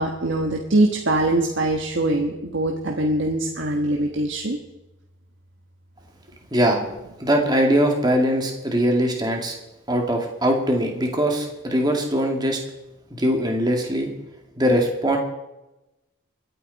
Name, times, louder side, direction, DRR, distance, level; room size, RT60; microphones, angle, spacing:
voice 1, 0.0-4.6, right 1 dB, 65° right, 1 dB, 1.4 m, -22 dB
voice 2, 6.5-6.8 7.2-9.5 9.9-12.6 13.1-14.1 14.6-15.2, equal, 20° right, 1 dB, 2.3 m, -21 dB
24.5 x 9.3 x 4.1 m, 0.97 s
head